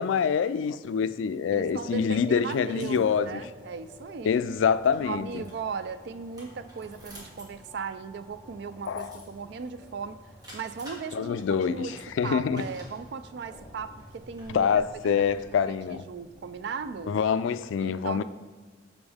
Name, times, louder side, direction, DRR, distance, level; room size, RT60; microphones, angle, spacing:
voice 1, 0.0-3.4 4.2-5.4 8.9-9.2 11.1-11.9 12.2-12.7 14.5-16.0 17.1-18.2, left 6 dB, 90° left, 14 dB, 0.3 m, -26 dB
sound 1, 1.5-15.6, left 1 dB, 15° left, 0.6 m, -52 dB
voice 2, 1.5-4.3 5.0-10.2 10.5-12.0 12.2-14.7 15.1-15.4 15.7-17.1 17.8-18.2, right 5 dB, 60° right, 12 dB, 0.4 m, -37 dB
sound 2, 1.8-17.2, equal, 20° right, 1.8 m, -53 dB
7.1 x 5.2 x 3.5 m, 1.4 s
head